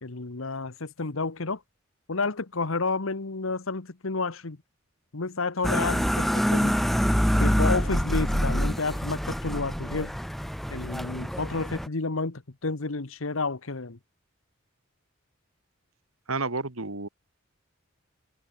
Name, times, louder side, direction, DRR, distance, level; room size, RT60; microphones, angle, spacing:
voice 1, 0.0-1.6 2.1-4.6 5.1-6.8 7.4-10.1 10.7-14.0, left 3 dB, 75° left, 1.3 m, -30 dB
sound 1, 5.6-11.9, equal, ahead, 1.3 m, -26 dB
voice 2, 16.3-17.1, right 3 dB, 85° right, 2.3 m, -30 dB
head